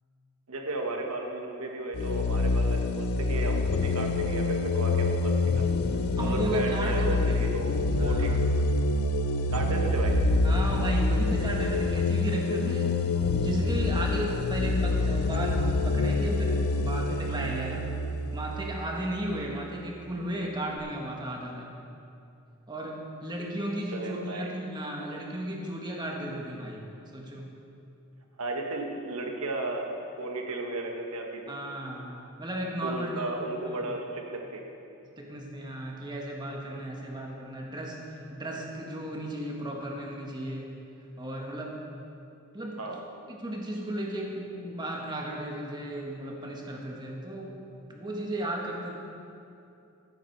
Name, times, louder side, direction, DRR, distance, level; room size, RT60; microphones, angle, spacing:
voice 1, 0.5-8.3 9.5-10.1 14.8-15.1 23.9-24.5 28.4-31.6 32.8-34.6 42.8-43.1, right 2 dB, 85° right, 2 dB, 1.5 m, -34 dB
sound 1, 1.9-19.4, left 2 dB, 75° left, 0.6 m, -26 dB
voice 2, 6.2-7.5 8.0-8.4 10.4-13.0 13.3-18.0 18.3-21.7 22.7-26.8 27.1-27.5 31.5-32.1 32.4-34.0 35.2-38.0 38.3-40.7 41.2-41.7 42.5-42.8 43.3-47.6 47.9-48.9, right 1 dB, 20° right, -1 dB, 1.4 m, -34 dB
15.0 x 8.3 x 4.6 m, 2.6 s
head